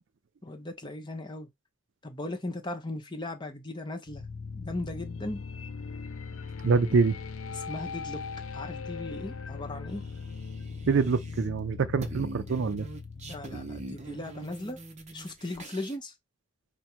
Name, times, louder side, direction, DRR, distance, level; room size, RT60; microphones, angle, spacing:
voice 1, 0.4-1.5 2.0-4.2 4.5-5.4 7.5-8.2 8.5-10.0 13.3-14.8 15.1-16.1, left 2 dB, 20° left, 0.8 m, -37 dB
sound 1, 4.1-15.0, left 5 dB, 85° left, 0.6 m, -40 dB
voice 2, 6.6-7.2 10.9-12.9, right 4 dB, 60° right, 0.4 m, -25 dB
sound 2, 9.9-11.6 11.9-16.0, right 2 dB, 35° right, 0.7 m, -44 dB
5.3 x 2.2 x 4.4 m
head